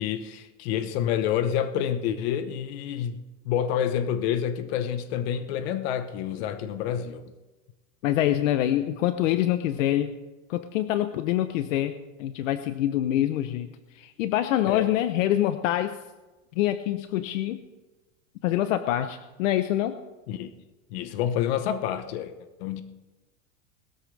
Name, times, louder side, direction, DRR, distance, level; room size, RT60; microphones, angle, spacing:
voice 1, 0.0-3.2 3.4-7.2 14.7-14.9 20.3-20.5 20.9-22.3 22.6-22.8, left 9 dB, 55° left, 10 dB, 1.1 m, -28 dB
voice 2, 8.0-10.2 10.5-13.7 13.9-16.0 16.5-17.6 18.4-20.0, left 12 dB, 75° left, 10 dB, 0.9 m, -25 dB
20.5 x 13.5 x 3.3 m, 1.1 s
supercardioid pair, 165°, 38 cm